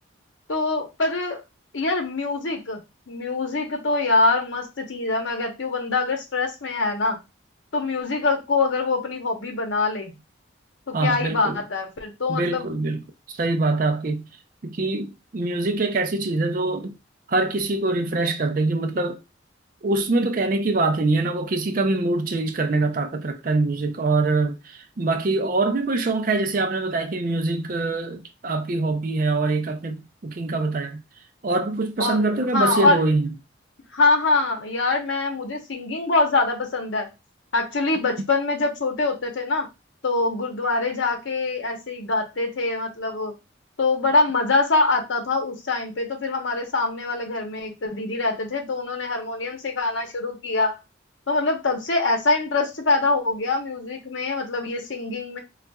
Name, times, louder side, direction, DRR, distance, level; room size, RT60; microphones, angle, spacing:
voice 1, 0.5-1.4 1.7-2.8 3.1-7.2 7.7-10.1 10.9-12.8 32.0-33.0 33.9-37.1 37.5-39.7 40.0-43.3 43.8-50.8 51.3-55.4, left 3 dB, 75° left, 0.8 m, -24 dB
voice 2, 10.9-11.6 12.3-13.0 13.3-14.2 14.6-16.9 17.3-19.2 19.8-31.0 31.4-33.3, right 2 dB, 45° right, 0.4 m, -24 dB
3.9 x 2.4 x 2.3 m
head